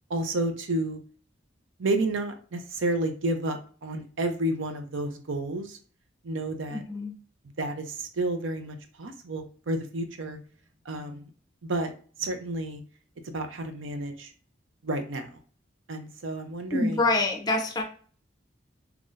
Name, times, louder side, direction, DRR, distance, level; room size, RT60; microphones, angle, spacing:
voice 1, 0.1-1.0 1.8-5.8 6.2-6.8 7.6-10.4 10.9-11.3 11.6-11.9 12.2-12.8 13.2-14.3 14.8-15.4 15.9-17.0, right 2 dB, 90° right, 6 dB, 0.6 m, -31 dB
voice 2, 6.7-7.2 16.7-17.8, left 2 dB, 20° left, 3 dB, 0.6 m, -26 dB
3.8 x 2.9 x 2.5 m, 0.42 s
head